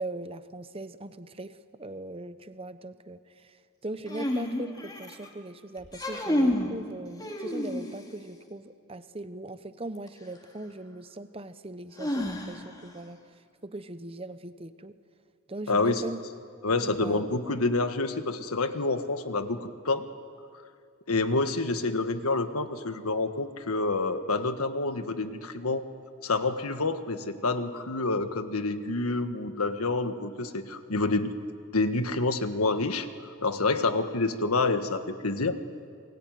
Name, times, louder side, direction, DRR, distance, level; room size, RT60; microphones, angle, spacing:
voice 1, 0.0-3.6 3.8-13.2 13.6-15.0 15.5-16.2 16.7-17.4, right 2 dB, 25° right, 12 dB, 0.9 m, -40 dB
sound 1, 4.1-5.3 5.8-6.7 7.2-8.1 10.1-10.2 12.0-12.8, left 1 dB, 20° left, 2.7 m, -29 dB
voice 2, 15.7-16.0 16.6-20.1 21.1-25.8 26.2-31.3 31.7-35.6, left 3 dB, 85° left, 9 dB, 1.6 m, -28 dB
28.5 x 22.5 x 9.3 m, 2.3 s
head